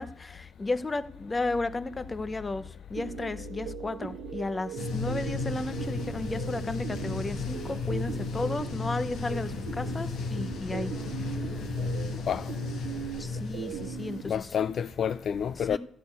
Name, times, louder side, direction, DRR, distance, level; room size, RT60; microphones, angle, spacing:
voice 1, 0.0-10.9 13.2-14.5 15.6-15.8, left 2 dB, 25° left, 0.7 m, -34 dB
sound 1, 2.9-14.2, right 12 dB, 80° right, 0.3 m, -40 dB
sound 2, 4.8-14.6, left 3 dB, 75° left, 1.2 m, -34 dB
voice 2, 14.2-15.8, left 8 dB, 60° left, 0.3 m, -29 dB
12.5 x 4.2 x 8.1 m
cardioid pair, 90°, 0 cm